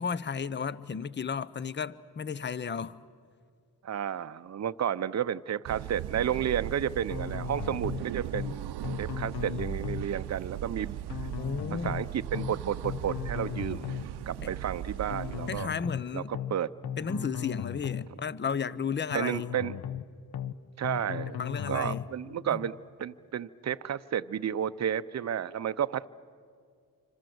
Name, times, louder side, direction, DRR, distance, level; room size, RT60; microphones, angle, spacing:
voice 1, 0.0-3.0 11.4-12.0 14.4-14.6 15.5-16.3 17.0-19.5 21.4-22.6, left 6 dB, 30° left, 0.7 m, -34 dB
voice 2, 3.8-8.7 9.0-11.0 11.7-13.9 14.3-15.7 16.1-16.7 19.1-19.7 20.8-21.4 21.7-26.1, right 9 dB, 45° right, 0.7 m, -32 dB
sound 1, 5.6-15.6, right 12 dB, 80° right, 0.7 m, -38 dB
sound 2, 7.1-8.0 8.3-8.6 8.8-10.1 11.1-12.0 12.3-12.6 12.8-14.1 15.1-16.0 16.3-16.6 16.8-18.1 19.1-20.0 20.3-20.6 20.8-22.1, left 9 dB, 75° left, 1.0 m, -36 dB
27.0 x 25.5 x 7.9 m
cardioid pair, 70°, 39 cm